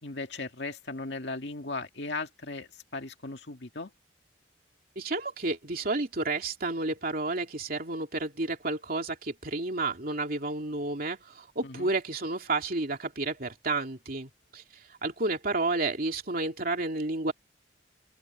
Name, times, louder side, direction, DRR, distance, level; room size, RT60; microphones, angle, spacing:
voice 1, 0.0-3.9 11.6-11.9, left 3 dB, 70° left, 2.2 m, -37 dB
voice 2, 5.0-17.3, right 2 dB, 55° right, 2.8 m, -31 dB
open air
head